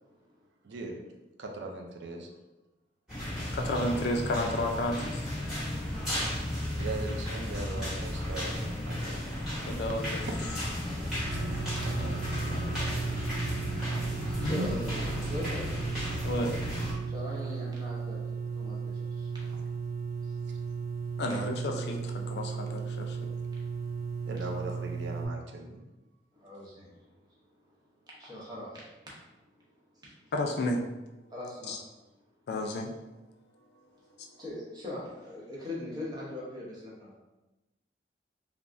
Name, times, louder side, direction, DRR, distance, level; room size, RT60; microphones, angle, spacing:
voice 1, 0.6-1.0 1.4-2.3 6.7-9.2 10.1-10.3 11.9-12.6 15.3-15.4 24.3-25.8, right 2 dB, 80° right, 2 dB, 0.4 m, -40 dB
sound 1, 3.1-16.9, left 1 dB, 5° right, 1.1 m, -34 dB
voice 2, 3.5-5.3 9.7-10.2 14.4-14.7 16.2-16.5 21.2-23.3 30.3-30.8 31.7-31.8 32.5-32.9 34.2-34.3, left 1 dB, 65° left, 2 dB, 0.3 m, -31 dB
sound 2, 11.1-25.3, right 5 dB, 15° left, 0.8 m, -35 dB
voice 3, 11.3-12.1 14.0-15.7 17.1-19.6 20.2-20.4 21.3-21.5 24.4-24.5 26.4-26.9 28.2-28.9 29.9-30.1 31.3-31.8 34.4-37.1, left 1 dB, 20° right, -6 dB, 0.7 m, -41 dB
3.3 x 2.0 x 2.5 m, 1.0 s
head